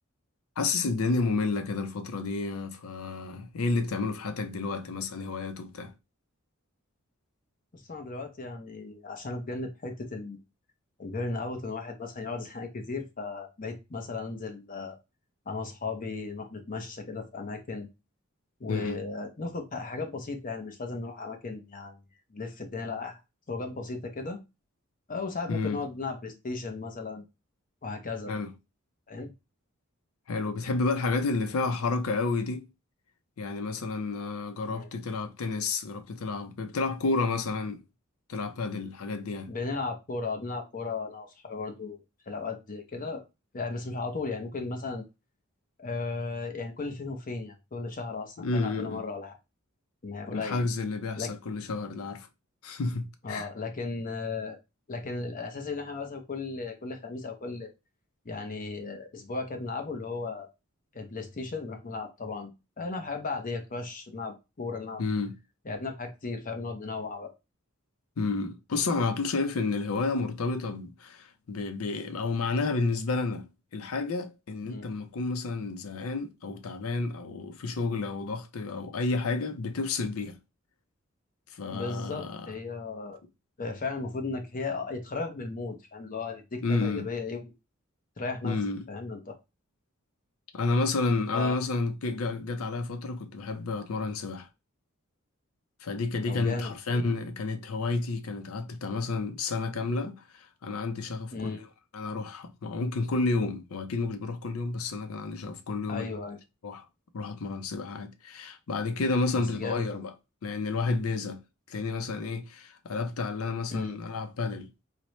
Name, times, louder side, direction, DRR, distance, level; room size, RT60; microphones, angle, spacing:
voice 1, 0.6-5.9 18.7-19.0 25.5-25.8 28.3-28.5 30.3-32.7 33.4-37.8 38.3-39.5 48.4-49.0 50.3-52.3 52.6-53.5 65.0-65.3 68.2-80.4 81.5-82.5 86.6-87.1 88.4-88.8 90.5-94.5 95.8-101.7 101.9-106.1 106.6-106.8 107.1-110.1 110.4-111.4 111.7-114.7, left 3 dB, 85° left, 0.5 m, -30 dB
voice 2, 7.7-10.4 11.0-15.0 15.5-17.9 18.6-22.0 22.3-23.2 23.5-24.4 25.1-27.3 27.8-28.3 29.1-29.3 34.7-34.9 39.5-42.0 42.3-43.2 43.5-45.0 45.8-49.3 50.0-50.6 51.2-51.3 53.2-54.6 54.9-57.7 58.2-60.5 60.9-62.5 62.8-65.0 65.6-67.3 74.6-74.9 81.7-83.2 83.6-87.5 88.2-88.6 88.9-89.3 91.3-91.6 96.2-97.0 101.3-101.6 105.9-106.4 109.3-110.0 113.7-114.0, left 3 dB, 40° left, 0.7 m, -35 dB
4.2 x 2.1 x 3.0 m
head